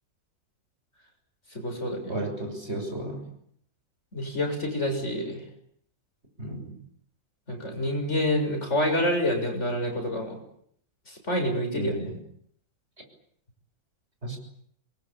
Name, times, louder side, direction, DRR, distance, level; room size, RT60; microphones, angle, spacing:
voice 1, 1.5-2.2 4.1-5.4 7.5-10.4 11.1-12.0, left 1 dB, 50° left, 3 dB, 7.2 m, -27 dB
voice 2, 2.1-3.2 6.4-6.7 11.7-12.1 14.2-14.4, right 1 dB, 45° right, 3 dB, 6.8 m, -33 dB
27.0 x 22.0 x 8.8 m, 0.69 s
omnidirectional pair, 1.6 m